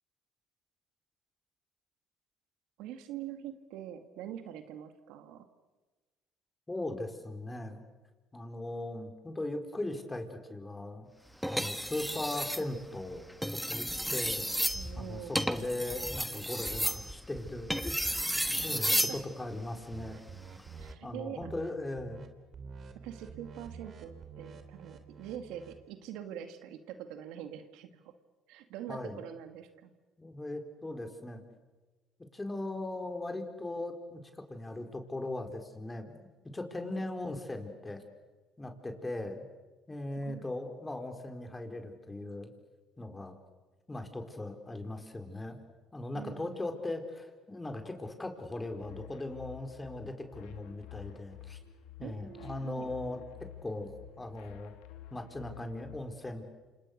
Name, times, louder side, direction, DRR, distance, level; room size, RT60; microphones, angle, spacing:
voice 1, 2.8-5.5 14.7-15.4 18.6-19.2 20.8-21.5 22.9-28.1 28.5-29.9 36.8-37.1 40.3-40.5 46.1-46.6 52.0-53.0, right 10 dB, 80° right, 8 dB, 2.1 m, -44 dB
voice 2, 6.7-7.8 8.3-11.1 11.5-13.3 13.7-14.4 15.0-20.2 21.0-22.3 28.9-29.2 30.2-31.4 32.3-36.2 36.5-38.0 38.6-39.5 39.9-42.5 43.0-43.4 43.9-45.6 45.9-51.6 52.0-53.2 53.6-54.7 55.1-56.4, left 2 dB, 15° left, 5 dB, 4.5 m, -39 dB
sound 1, 11.4-12.7 13.3-19.2 20.6-20.9, equal, ahead, 1.7 m, -32 dB
sound 2, 19.9-21.0 21.4-21.7 22.0-22.3 22.5-25.8, right 6 dB, 50° right, 3.2 m, -48 dB
sound 3, 48.7-56.0, left 11 dB, 85° left, 2.4 m, -50 dB
29.0 x 27.0 x 6.7 m, 1.2 s
supercardioid pair, 85°, 0 cm